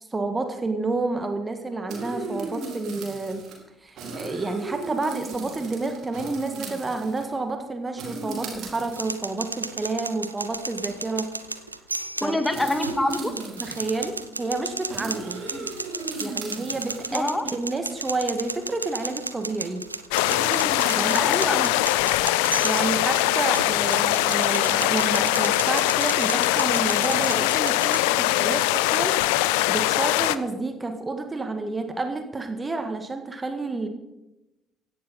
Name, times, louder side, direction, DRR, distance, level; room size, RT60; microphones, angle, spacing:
voice 1, 0.1-3.4 3.8-11.3 12.2-12.4 13.6-15.4 16.2-19.8 21.0-21.3 22.6-33.9, right 3 dB, 20° right, 7 dB, 1.7 m, -30 dB
sound 1, 1.9-3.5 3.9-7.4 8.0-9.3 10.1-10.2 10.7-10.8 11.1-11.4 12.5-14.1 14.9-17.2 18.6-18.7 20.2-21.4, right 3 dB, 55° right, 4.1 m, -36 dB
sound 2, 8.9-28.0, right 3 dB, 90° right, 0.6 m, -34 dB
voice 2, 12.2-13.3 15.5-15.7 17.1-17.4 21.0-21.7, left 1 dB, 10° left, 7 dB, 2.2 m, -26 dB
sound 3, 20.1-30.4, left 16 dB, 70° left, 0.5 m, -22 dB
16.5 x 11.0 x 5.5 m, 0.96 s
figure-of-eight pair, 50°, 0 cm